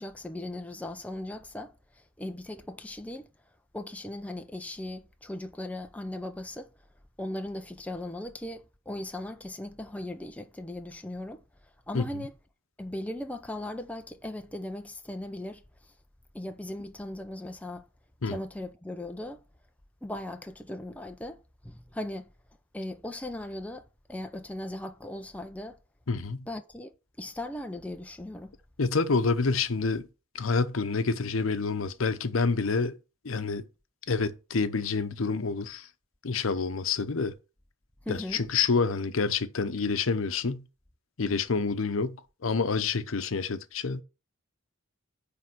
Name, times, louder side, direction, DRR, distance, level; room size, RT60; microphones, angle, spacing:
voice 1, 0.0-3.3 3.7-6.7 7.2-12.3 12.8-15.9 16.3-17.9 18.2-19.4 20.0-22.3 22.7-25.8 26.5-26.9 27.2-28.5 38.0-38.4, left 1 dB, 5° left, 0.6 m, -38 dB
voice 2, 26.1-26.5 28.8-30.1 30.3-33.0 33.2-33.6 34.1-35.9 36.2-37.3 38.1-40.6 41.2-44.0, left 4 dB, 85° left, 0.8 m, -28 dB
9.5 x 3.5 x 6.1 m
head